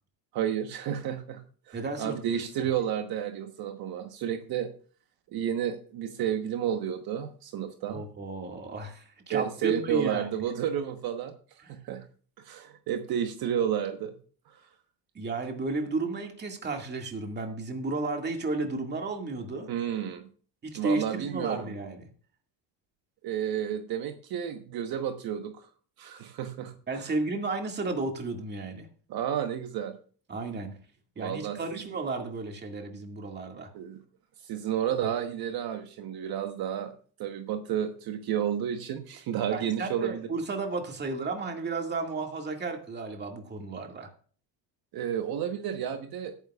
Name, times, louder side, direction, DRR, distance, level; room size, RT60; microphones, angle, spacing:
voice 1, 0.3-1.4 1.7-4.7 5.3-8.0 9.3-12.1 12.4-14.2 19.7-20.3 20.7-21.7 23.2-25.7 26.0-27.0 29.1-30.0 31.2-31.8 33.7-34.0 34.4-36.9 37.2-40.3 44.9-46.5, right 9 dB, 60° right, 6 dB, 1.2 m, -31 dB
voice 2, 1.7-2.4 7.9-10.3 11.6-11.7 15.1-19.7 20.6-22.0 26.9-28.9 30.3-30.7 31.2-33.7 39.5-44.1, right 3 dB, 25° right, 3 dB, 2.1 m, -33 dB
17.5 x 9.7 x 2.4 m, 0.43 s
cardioid pair, 155°, 42 cm